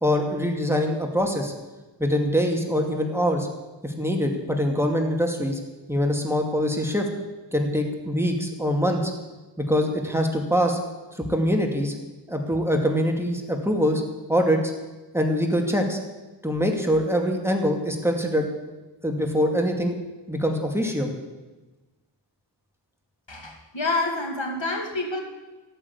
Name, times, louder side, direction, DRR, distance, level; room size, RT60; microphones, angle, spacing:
voice 1, 0.0-1.5 2.0-3.5 3.8-5.6 5.9-7.1 7.5-9.1 9.7-10.8 11.2-11.9 12.3-14.0 14.3-14.6 15.1-16.0 16.4-18.5 19.0-20.0 20.3-21.1, equal, 5° right, 2 dB, 2.4 m, -23 dB
voice 2, 23.3-25.2, left 2 dB, 85° left, 2 dB, 2.5 m, -28 dB
14.5 x 9.1 x 8.3 m, 1.2 s
wide cardioid pair, 50°, 44 cm